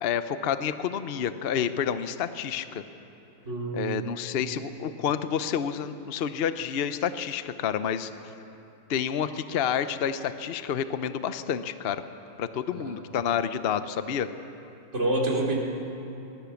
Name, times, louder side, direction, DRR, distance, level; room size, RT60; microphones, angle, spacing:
voice 1, 0.0-2.8 3.7-8.1 8.9-12.0 12.4-14.3, left 8 dB, 75° left, 11 dB, 0.5 m, -29 dB
voice 2, 3.4-4.1 12.7-13.0 14.9-15.6, right 2 dB, 35° right, -2 dB, 3.5 m, -28 dB
22.5 x 21.0 x 7.1 m, 2.9 s
omnidirectional pair, 2.1 m